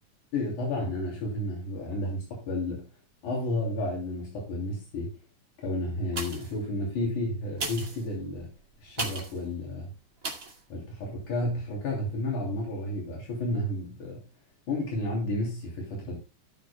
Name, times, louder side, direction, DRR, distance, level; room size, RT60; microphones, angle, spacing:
voice 1, 0.3-2.9 3.2-5.1 5.6-8.5 8.8-9.9 10.7-14.2 14.7-16.2, left 1 dB, 75° left, 4.4 m, -31 dB
sound 1, 6.1-6.6 7.5-9.4 10.2-10.6 11.1-11.2, right 3 dB, 30° right, 2.4 m, -36 dB
18.0 x 6.7 x 2.2 m
omnidirectional pair, 3.5 m